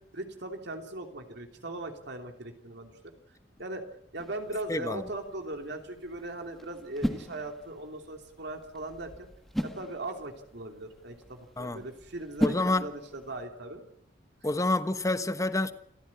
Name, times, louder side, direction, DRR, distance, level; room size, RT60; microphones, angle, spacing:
voice 1, 0.1-2.9 3.6-3.8 4.1-9.3 9.6-13.8, right 2 dB, 60° right, 3.0 m, -39 dB
sound 1, 4.2-13.4, equal, ahead, 1.6 m, -38 dB
voice 2, 4.7-5.0 11.6-11.8 12.4-12.9 14.4-15.7, left 2 dB, 15° left, 1.2 m, -28 dB
27.5 x 14.5 x 8.5 m
head